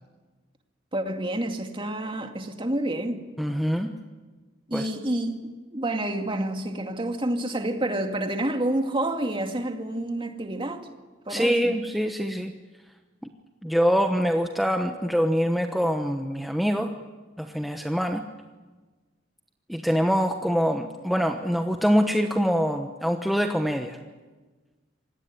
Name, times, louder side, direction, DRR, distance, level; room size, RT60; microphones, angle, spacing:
voice 1, 0.9-3.2 4.7-10.9 11.3-11.7, right 1 dB, 25° right, 2.2 m, -29 dB
voice 2, 3.4-4.0 4.7-4.9 11.3-12.5 13.2-13.3 13.6-16.9 17.4-18.2 19.7-24.0, equal, ahead, 1.1 m, -24 dB
26.0 x 19.0 x 9.5 m
head